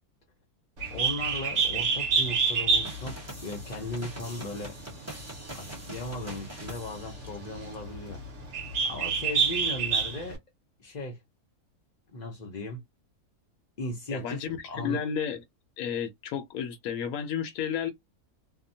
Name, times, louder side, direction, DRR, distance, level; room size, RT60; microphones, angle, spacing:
Bird, 0.8-10.4, right 5 dB, 55° right, 1.2 m, -29 dB
voice 1, 0.9-4.8 5.5-8.2 8.8-10.4 10.8-11.2 12.1-12.8 13.8-15.0, left 1 dB, 50° left, 0.5 m, -37 dB
sound 1, 2.8-7.8, right 2 dB, 10° right, 0.8 m, -44 dB
voice 2, 14.1-15.4 15.8-17.9, left 8 dB, 75° left, 1.0 m, -32 dB
2.8 x 2.1 x 2.6 m
omnidirectional pair, 1.6 m